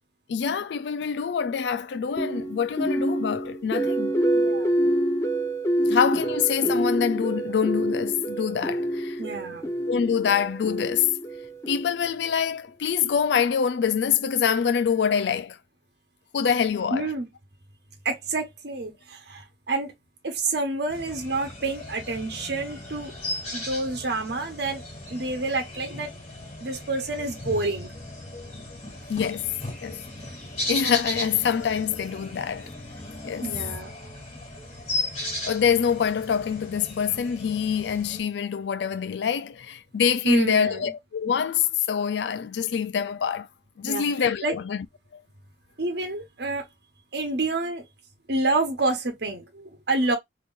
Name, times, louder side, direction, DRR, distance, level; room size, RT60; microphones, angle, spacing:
voice 1, 0.3-4.2 5.9-9.2 9.9-11.1 11.7-15.6 16.3-17.1 29.1-30.0 30.7-32.7 33.2-33.5 35.4-43.5 43.8-44.9 45.1-45.2, left 7 dB, 70° left, 0.4 m, -25 dB
sound 1, 2.2-12.3, right 1 dB, 15° left, 0.9 m, -27 dB
voice 2, 4.3-4.8 9.2-9.7 16.9-17.3 18.0-19.9 20.2-23.1 23.5-24.8 25.1-26.1 26.6-27.9 33.4-33.9 40.2-40.8 43.9-44.0 44.4-44.5 45.8-46.7 47.1-47.9 48.3-50.2, right 2 dB, 65° right, 1.1 m, -28 dB
sound 2, 20.9-38.2, left 1 dB, 35° left, 2.1 m, -36 dB
3.7 x 2.9 x 2.5 m
head